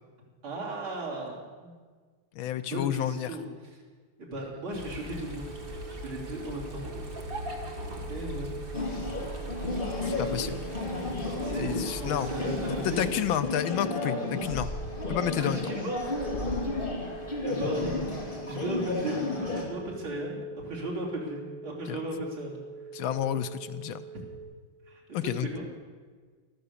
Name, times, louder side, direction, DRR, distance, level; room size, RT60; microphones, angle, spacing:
voice 1, 0.4-1.8 2.6-3.5 4.2-6.8 8.1-8.5 11.4-13.1 15.4-17.0 17.4-22.9 24.9-25.7, right 1 dB, 70° right, -4 dB, 4.3 m, -36 dB
voice 2, 2.3-3.3 10.0-10.6 11.6-12.3 12.8-14.7 15.1-15.6 21.9-22.0 22.9-24.0 25.1-25.5, left 11 dB, 75° left, 11 dB, 1.3 m, -30 dB
sound 1, 4.7-13.4, equal, 30° right, 1.4 m, -40 dB
sound 2, 5.3-24.4, right 6 dB, 50° right, 6.9 m, -45 dB
sound 3, 8.7-19.6, left 2 dB, 25° left, 2.6 m, -33 dB
14.0 x 13.0 x 6.9 m, 1.5 s
omnidirectional pair, 2.4 m